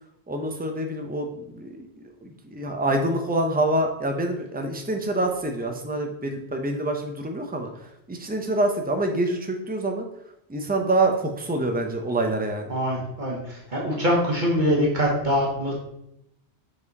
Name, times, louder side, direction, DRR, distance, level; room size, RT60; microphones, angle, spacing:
voice 1, 0.3-1.3 1.5-1.9 2.2-7.7 8.1-10.1 10.5-12.7, right 2 dB, 10° right, 4 dB, 0.7 m, -26 dB
voice 2, 12.7-15.7, equal, 45° right, -3 dB, 1.6 m, -23 dB
7.5 x 5.0 x 4.1 m, 0.79 s
omnidirectional pair, 1.1 m